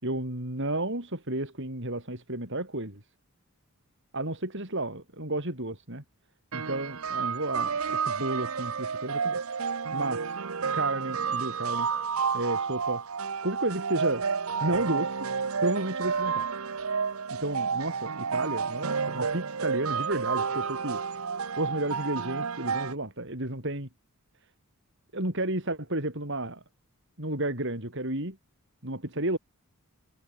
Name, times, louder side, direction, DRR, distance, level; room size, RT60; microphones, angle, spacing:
voice 1, 0.0-3.0 4.1-6.0 6.5-9.4 9.9-10.4 10.7-11.9 12.3-13.0 13.4-14.3 14.6-15.3 15.6-16.5 17.4-21.0 21.6-23.9 25.1-26.6 27.2-28.4 28.8-29.4, right 1 dB, 55° right, 5.6 m, -32 dB
sound 1, 6.5-22.9, right 6 dB, 70° right, 0.9 m, -30 dB
head